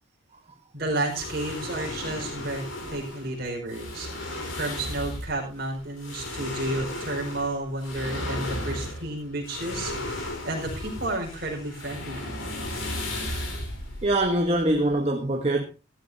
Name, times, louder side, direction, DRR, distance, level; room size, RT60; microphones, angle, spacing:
voice 1, 0.7-12.3, right 2 dB, 50° right, 4.9 m, -32 dB
sound 1, 1.1-15.0, left 1 dB, 85° left, 4.5 m, -35 dB
voice 2, 14.0-15.6, right 1 dB, 30° right, 1.3 m, -23 dB
14.5 x 14.0 x 2.8 m
head